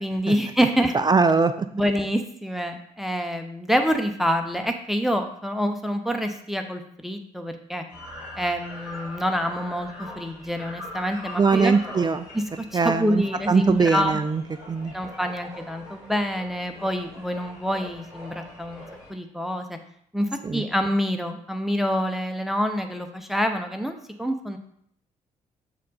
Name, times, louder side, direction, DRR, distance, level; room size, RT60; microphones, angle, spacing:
voice 1, 0.0-1.0 1.7-7.8 8.4-11.8 12.3-12.4 12.7-14.2 14.9-18.8 19.1-19.8 20.1-24.6, equal, ahead, 5 dB, 0.8 m, -26 dB
voice 2, 0.9-1.5 11.4-12.3 12.7-14.4 14.7-14.9 20.4-20.6, right 4 dB, 20° right, 10 dB, 0.4 m, -21 dB
sound 1, 7.9-19.1, left 1 dB, 75° left, 2.0 m, -42 dB
7.2 x 4.2 x 4.1 m, 0.69 s
figure-of-eight pair, 40°, 20 cm